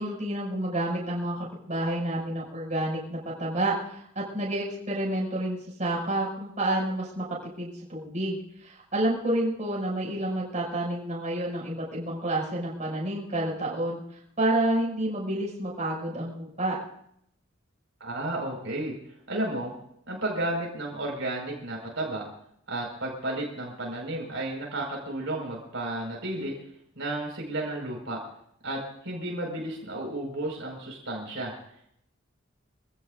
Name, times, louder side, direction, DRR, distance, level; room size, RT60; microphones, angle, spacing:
voice 1, 0.0-7.2 7.6-14.0 14.4-16.8, right 1 dB, 35° right, -4 dB, 6.4 m, -29 dB
voice 2, 18.0-18.9 19.3-19.7 20.1-22.2 22.7-26.6 27.0-28.2 28.6-31.5, right 1 dB, 65° right, -1 dB, 5.4 m, -32 dB
27.0 x 16.5 x 2.6 m, 0.71 s
head